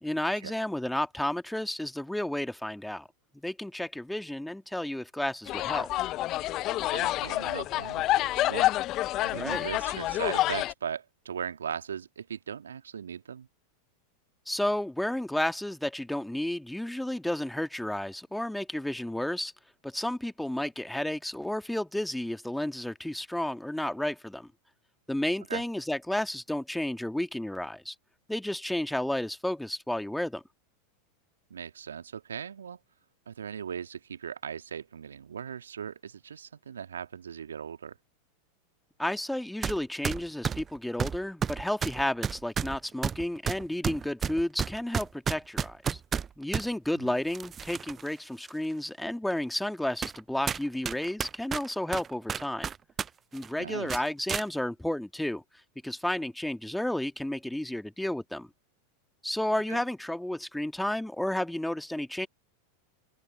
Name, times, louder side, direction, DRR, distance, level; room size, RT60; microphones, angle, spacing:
voice 1, 0.0-3.1 3.4-5.9 9.4-9.7 14.5-19.5 19.8-24.5 25.1-28.0 28.3-30.4 39.0-46.0 46.4-52.7 53.3-55.4 55.8-58.5 59.2-62.3, left 1 dB, 5° left, 1.9 m, -32 dB
sound 1, 5.5-10.7, left 15 dB, 40° left, 0.7 m, -28 dB
voice 2, 6.9-8.7 9.2-13.5 25.5-25.6 31.5-32.8 33.3-38.0 47.0-47.2 53.6-54.0 59.7-59.8, right 8 dB, 75° right, 2.1 m, -38 dB
sound 2, 39.6-39.8 40.0-46.7 47.3-48.1 48.5-48.6 49.3-49.4 50.0-50.2 50.5-53.1 53.3-53.5 53.9-54.5, right 7 dB, 25° right, 0.5 m, -31 dB
open air
figure-of-eight pair, 90°, 0 cm